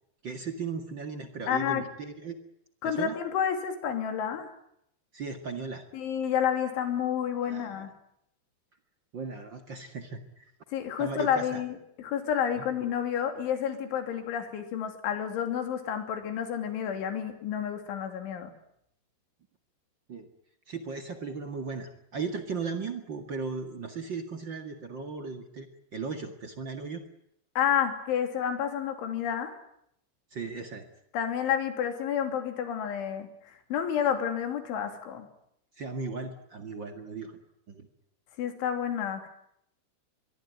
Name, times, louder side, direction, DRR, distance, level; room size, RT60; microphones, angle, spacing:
voice 1, 0.2-2.4 2.8-3.2 5.1-5.8 7.4-7.9 9.1-10.5 11.0-11.6 20.1-20.3 20.7-27.0 30.3-30.9 35.8-37.4 37.7-37.9, right 4 dB, 60° right, 6 dB, 1.2 m, -37 dB
voice 2, 1.5-1.8 2.8-4.5 5.9-7.9 10.7-18.5 27.6-29.5 31.1-35.3 38.4-39.3, left 8 dB, 90° left, 6 dB, 5.4 m, -30 dB
24.5 x 22.5 x 9.4 m, 0.74 s
omnidirectional pair, 5.3 m